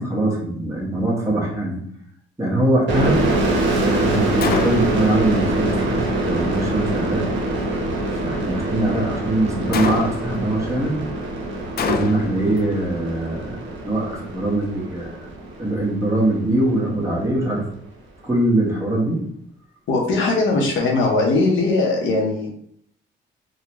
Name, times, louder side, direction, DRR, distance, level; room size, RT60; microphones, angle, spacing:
voice 1, 0.0-1.8 2.4-3.2 3.7-7.3 8.2-11.0 11.8-13.6 13.8-15.1 15.6-17.7 18.2-19.2, right 1 dB, 15° right, -3 dB, 1.1 m, -22 dB
sound 1, 2.9-16.3, right 2 dB, 70° right, 0.8 m, -24 dB
Gunshot gunfire, 4.4-5.1 9.7-10.4 11.8-12.5, left 6 dB, 50° left, 0.4 m, -25 dB
voice 2, 19.9-22.5, left 3 dB, 75° left, 0 dB, 0.9 m, -19 dB
3.7 x 2.2 x 3.0 m, 0.67 s
cardioid pair, 90°, 20 cm